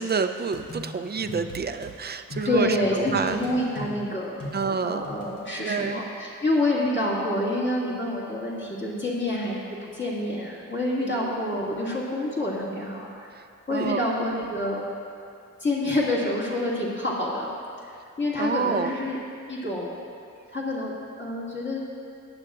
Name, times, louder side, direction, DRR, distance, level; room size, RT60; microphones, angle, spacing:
voice 1, 0.0-3.4 4.5-5.1 5.6-6.0 11.0-11.3 13.3-13.4 13.7-14.0 18.4-18.9, right 5 dB, 30° right, 8 dB, 0.5 m, -28 dB
sound 1, 0.5-1.9 2.3-5.4, left 1 dB, 85° left, 2.6 m, -39 dB
voice 2, 2.4-4.4 4.8-13.3 13.7-14.8 15.6-17.5 18.2-19.2 19.5-20.0 20.5-21.8, left 1 dB, 35° left, -7 dB, 2.0 m, -27 dB
20.0 x 8.8 x 2.4 m, 2.4 s
wide cardioid pair, 130°, 33 cm